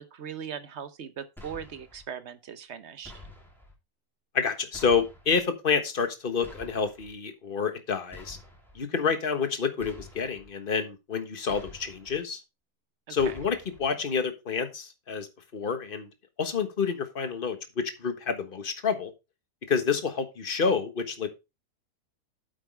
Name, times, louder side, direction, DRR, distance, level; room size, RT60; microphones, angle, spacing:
voice 1, 0.0-3.1 13.1-13.4, right 8 dB, 50° right, 1.1 m, -39 dB
sound 1, 1.4-2.0 3.0-3.7 4.7-5.4 6.4-7.1 8.1-8.8 9.8-10.5 11.5-12.2 13.2-13.9, left 2 dB, ahead, 3.0 m, -48 dB
voice 2, 4.3-8.4 8.7-12.4 13.1-15.3 15.5-16.1 16.4-19.1 19.7-21.3, left 5 dB, 35° left, 1.5 m, -28 dB
9.2 x 8.2 x 3.4 m
omnidirectional pair, 1.6 m